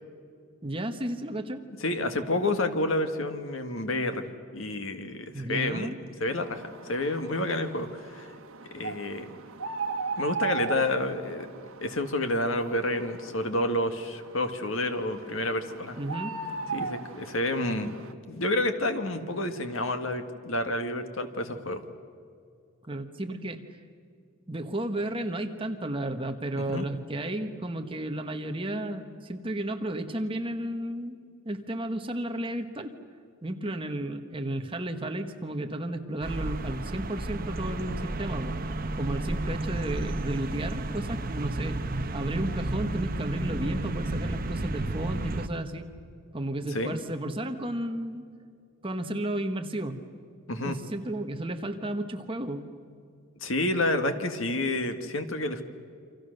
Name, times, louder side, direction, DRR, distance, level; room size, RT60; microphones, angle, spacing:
voice 1, 0.6-1.6 5.3-6.0 16.0-16.3 22.9-23.6 24.5-31.2 31.4-32.9 33.4-38.6 39.0-41.8 42.1-45.9 46.3-48.2 48.8-50.0 50.6-52.7, right 1 dB, 25° right, 6 dB, 1.4 m, -33 dB
voice 2, 1.8-4.3 4.5-8.3 8.7-9.3 10.2-11.5 11.8-16.0 16.7-18.0 18.3-21.8 26.6-26.9 46.7-47.0 50.5-50.8 53.4-55.6, left 1 dB, 70° left, 7 dB, 1.8 m, -29 dB
sound 1, 6.4-18.1, right 4 dB, 80° right, 1.3 m, -38 dB
sound 2, 36.2-45.5, right 2 dB, 40° right, 1.0 m, -32 dB
28.5 x 26.0 x 6.7 m, 2.3 s
head